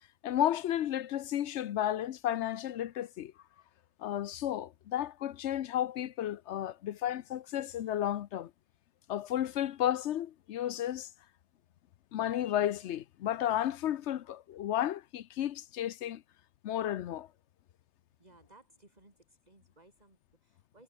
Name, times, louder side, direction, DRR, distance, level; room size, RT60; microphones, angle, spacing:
voice 1, 0.2-3.3 4.0-8.5 9.1-11.1 12.1-16.2 16.6-17.3, left 11 dB, 70° left, 0.9 m, -33 dB
voice 2, 18.2-20.8, right 2 dB, 35° right, 3.6 m, -61 dB
omnidirectional pair, 1.3 m